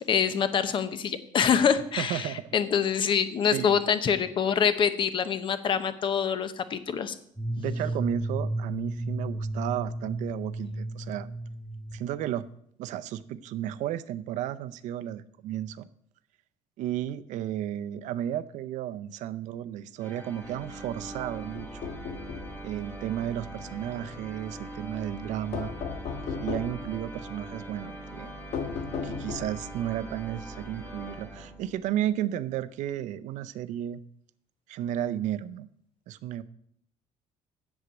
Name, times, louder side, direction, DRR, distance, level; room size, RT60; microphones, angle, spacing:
voice 1, 0.1-7.2, left 7 dB, 40° left, 12 dB, 0.9 m, -25 dB
voice 2, 2.0-2.5 3.5-3.8 7.6-11.3 11.9-12.4 12.8-15.9 16.8-21.9 22.6-25.7 26.4-28.3 29.0-34.0 34.7-35.7 36.1-36.4, right 11 dB, 70° right, 13 dB, 0.6 m, -33 dB
sound 1, 7.4-12.5, right 1 dB, 5° right, 1.5 m, -33 dB
sound 2, 20.0-31.9, right 1 dB, 15° left, 1.9 m, -42 dB
sound 3, 21.5-22.5 25.5-26.9 28.5-29.7, left 6 dB, 55° left, 1.3 m, -35 dB
8.1 x 7.3 x 8.0 m, 0.67 s
cardioid pair, 145°, 13 cm